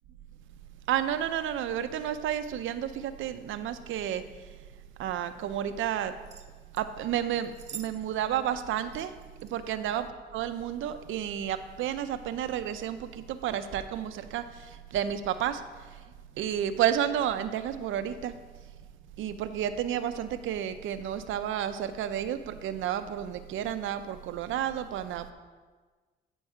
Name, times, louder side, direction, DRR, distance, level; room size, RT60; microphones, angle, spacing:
voice 1, 0.9-4.2 5.0-6.1 6.8-9.1 9.4-10.1 10.3-15.6 16.4-18.3 19.2-25.3, right 10 dB, 80° right, 11 dB, 0.6 m, -31 dB
sound 1, 6.3-6.9 7.4-8.0 8.2-8.3 8.9-9.5 10.4-10.6 11.2-11.4, right 7 dB, 35° right, 0.8 m, -46 dB
9.2 x 5.3 x 4.8 m, 1.4 s
cardioid pair, 90°, 20 cm